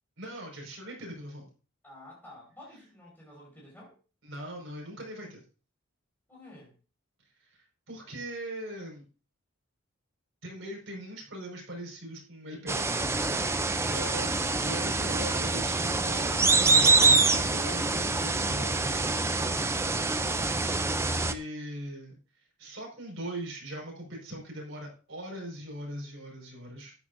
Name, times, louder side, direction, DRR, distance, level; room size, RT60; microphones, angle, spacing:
voice 1, 0.2-1.5 4.2-5.4 7.4-9.0 10.4-14.3 14.6-19.1 21.0-22.2 22.6-26.9, right 1 dB, 60° right, 5.5 m, -41 dB
voice 2, 1.8-3.9 6.3-6.7 20.1-20.5, left 1 dB, 10° left, 5.0 m, -51 dB
sound 1, 12.7-21.3, right 3 dB, 10° right, 0.5 m, -25 dB
13.0 x 11.0 x 2.7 m
head